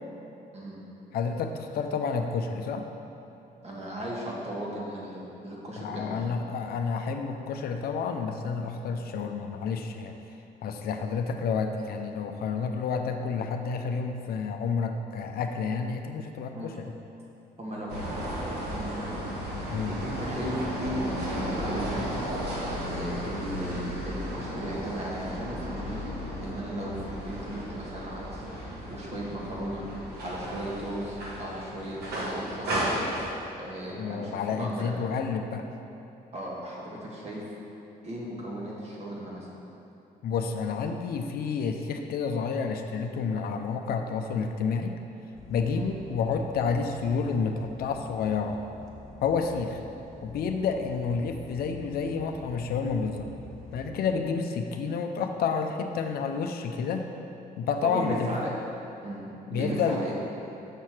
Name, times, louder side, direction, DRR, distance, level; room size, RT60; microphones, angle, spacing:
voice 1, 1.1-2.9 5.8-10.1 10.6-16.8 19.7-20.0 33.9-35.7 40.2-45.0 45.5-48.6 49.2-49.8 50.2-53.3 53.7-57.0 57.6-58.5 59.5-60.0, left 5 dB, 70° left, 5 dB, 0.5 m, -30 dB
voice 2, 3.6-6.3 16.5-16.8 17.6-19.2 19.8-22.3 22.8-33.0 33.5-34.9 36.3-37.4 38.0-39.5 45.7-45.9 57.8-58.5 59.0-60.1, equal, 40° right, -4 dB, 1.4 m, -36 dB
sound 1, 17.9-33.3, equal, 80° right, 1.2 m, -34 dB
sound 2, 45.3-53.9, left 2 dB, 5° left, 0.9 m, -47 dB
6.6 x 3.1 x 5.8 m, 3.0 s
cardioid pair, 95°, 16 cm